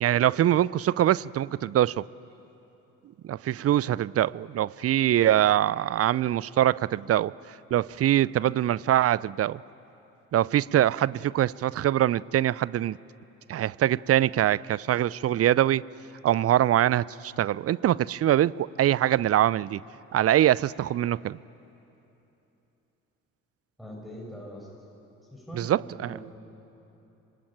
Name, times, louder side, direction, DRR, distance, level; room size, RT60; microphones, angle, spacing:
voice 1, 0.0-2.0 3.2-7.3 7.7-9.6 10.3-13.0 13.5-15.8 16.2-19.8 20.1-21.4 25.5-26.2, right 12 dB, 35° right, 22 dB, 0.5 m, -23 dB
voice 2, 23.8-24.7 25.3-26.4, equal, ahead, -2 dB, 6.6 m, -42 dB
25.5 x 21.5 x 9.0 m, 3.0 s
figure-of-eight pair, 45°, 41 cm